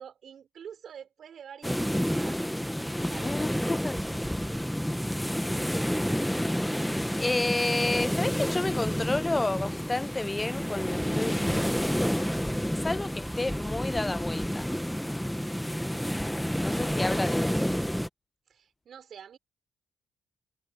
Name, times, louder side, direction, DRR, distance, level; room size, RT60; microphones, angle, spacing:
voice 1, 0.0-2.4 3.1-3.5 18.5-19.4, right 8 dB, 60° right, 5.8 m, -46 dB
sound 1, 1.6-18.1, equal, ahead, 1.4 m, -29 dB
voice 2, 3.2-4.0 7.2-12.3 12.8-14.7 16.6-17.8, left 2 dB, 15° left, 0.4 m, -31 dB
cardioid pair, 90°, 0 cm